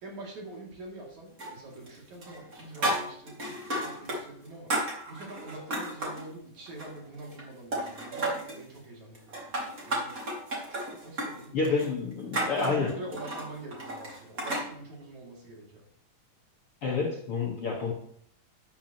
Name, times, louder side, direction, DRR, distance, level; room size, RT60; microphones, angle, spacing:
voice 1, 0.0-4.7 5.1-9.6 9.8-10.2 11.0-11.6 12.5-15.8, right 2 dB, 55° right, -2 dB, 4.0 m, -44 dB
sound 1, 1.4-4.2 4.4-6.2 6.7-7.4 7.7-8.6 9.1-14.7, right 1 dB, 25° right, 2.4 m, -33 dB
voice 2, 11.5-12.9 16.8-17.9, left 4 dB, 55° left, -2 dB, 1.8 m, -29 dB
12.5 x 10.0 x 3.0 m, 0.65 s
omnidirectional pair, 4.1 m